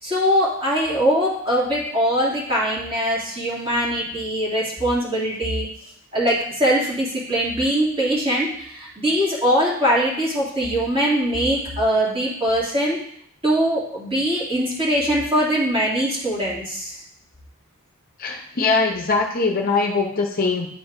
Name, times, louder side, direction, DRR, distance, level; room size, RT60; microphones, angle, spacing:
voice 1, 0.0-5.7 6.1-13.0 13.4-17.0, equal, 25° right, -7 dB, 2.4 m, -22 dB
voice 2, 18.2-20.7, left 4 dB, 40° left, 1 dB, 0.7 m, -21 dB
10.0 x 4.5 x 2.6 m, 0.68 s
head